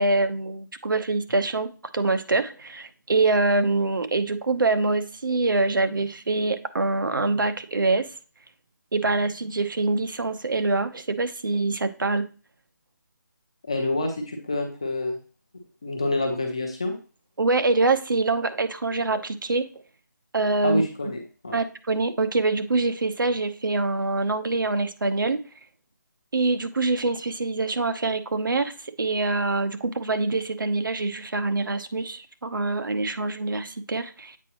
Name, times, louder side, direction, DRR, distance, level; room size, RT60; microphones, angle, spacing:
voice 1, 0.0-8.1 8.9-12.3 17.4-19.7 20.3-20.8 21.5-25.4 26.3-34.4, right 3 dB, 80° right, 9 dB, 0.8 m, -25 dB
voice 2, 13.7-15.2 15.8-16.9 20.6-21.6, left 2 dB, 15° left, 3 dB, 0.6 m, -27 dB
8.2 x 4.8 x 2.9 m, 0.36 s
figure-of-eight pair, 180°, 11 cm